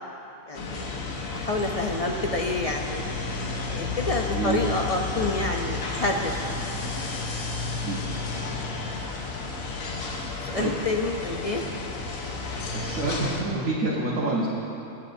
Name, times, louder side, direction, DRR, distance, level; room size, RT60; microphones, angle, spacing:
sound 1, 0.5-13.4, left 3 dB, 80° left, 1.4 m, -32 dB
voice 1, 0.5-0.9 1.3-3.0 3.7-6.6 8.2-8.3 10.5-11.6, left 2 dB, 45° left, 2 dB, 0.4 m, -28 dB
voice 2, 4.3-4.6 7.8-8.0 10.6-10.7 12.7-14.5, right 2 dB, 75° right, -5 dB, 1.6 m, -27 dB
22.0 x 8.5 x 2.6 m, 2.9 s
omnidirectional pair, 1.4 m